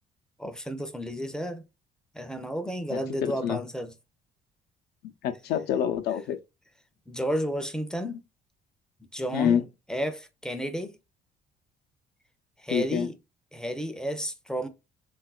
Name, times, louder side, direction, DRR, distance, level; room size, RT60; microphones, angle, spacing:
voice 1, 0.4-1.6 2.1-3.9 7.1-8.2 9.1-11.0 12.6-13.2 13.5-14.7, equal, 5° left, 0.5 m, -32 dB
voice 2, 2.9-3.6 5.2-6.4 9.3-9.6 12.7-13.1, left 9 dB, 75° left, 0.5 m, -27 dB
3.6 x 2.3 x 2.3 m
cardioid pair, 110°, 17 cm